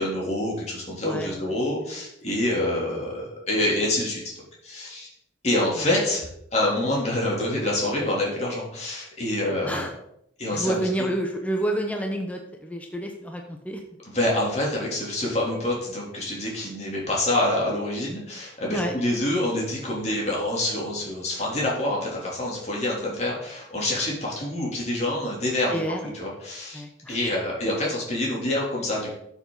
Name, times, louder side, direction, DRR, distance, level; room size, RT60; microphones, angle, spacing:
voice 1, 0.0-4.2 4.6-5.1 5.4-9.9 10.4-11.1 14.1-25.8 26.1-26.8 27.1-29.1, left 1 dB, 35° left, -4 dB, 3.3 m, -26 dB
voice 2, 1.0-1.4 5.8-5.9 9.6-9.9 10.5-13.8 18.7-18.9 25.7-26.1 26.7-27.2, right 1 dB, 10° left, 2 dB, 1.0 m, -29 dB
12.0 x 7.3 x 4.1 m, 0.76 s
head